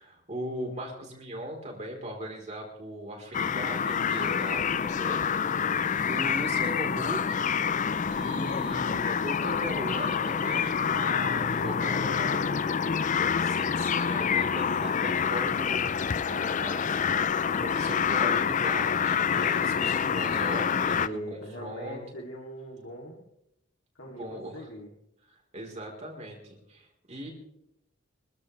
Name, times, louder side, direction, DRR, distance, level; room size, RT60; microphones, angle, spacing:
voice 1, 0.0-5.7 6.1-7.8 8.1-12.4 13.4-17.3 17.6-22.0 24.2-24.7 25.5-27.3, equal, 35° right, 0 dB, 3.9 m, -39 dB
sound 1, 3.3-21.1, left 7 dB, 40° left, 0.5 m, -27 dB
voice 2, 11.0-12.8 20.9-23.2 23.9-24.9, equal, 80° left, -2 dB, 2.9 m, -41 dB
24.5 x 15.0 x 3.3 m, 0.80 s
head